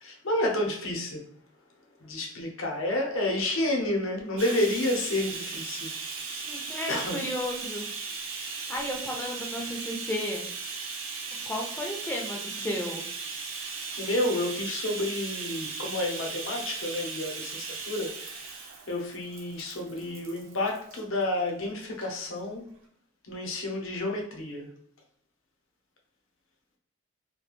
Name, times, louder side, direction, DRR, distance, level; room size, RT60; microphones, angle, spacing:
voice 1, 0.0-1.2 2.0-5.9 6.9-7.2 14.0-18.5 18.9-22.6 23.3-24.7, left 1 dB, 75° left, 1 dB, 0.7 m, -30 dB
Bathtub (filling or washing), 4.4-21.0 21.9-22.1 22.4-22.5, right 4 dB, 75° right, 0.5 m, -37 dB
voice 2, 6.4-7.8 8.7-10.4 11.5-13.0, left 1 dB, 10° left, -1 dB, 0.4 m, -33 dB
2.3 x 2.2 x 3.0 m, 0.65 s
head